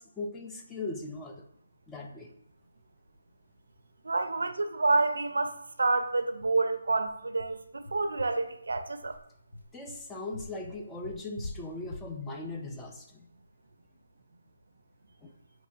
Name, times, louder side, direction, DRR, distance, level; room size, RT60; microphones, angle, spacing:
voice 1, 0.0-1.4 1.9-2.3 9.7-13.3 15.2-15.3, left 2 dB, 10° left, 0.4 m, -39 dB
sound 1, 3.5-3.6 3.9-4.0 4.3-4.5 4.9-5.0 5.4-13.9, left 2 dB, 75° left, 0.6 m, -46 dB
voice 2, 4.0-9.1, right 3 dB, 75° right, 0.4 m, -28 dB
5.1 x 2.9 x 2.5 m
figure-of-eight pair, 150°, 0 cm